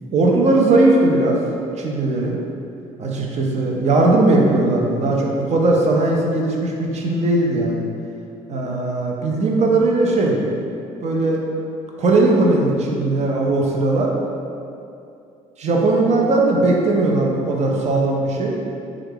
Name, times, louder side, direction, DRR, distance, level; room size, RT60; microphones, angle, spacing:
voice 1, 0.1-1.4 1.8-2.4 3.0-7.9 8.5-10.4 11.0-11.4 12.0-14.1 15.6-18.6, right 2 dB, 50° right, -1 dB, 0.6 m, -18 dB
3.2 x 2.4 x 3.4 m, 2.6 s
supercardioid pair, 65°, 15 cm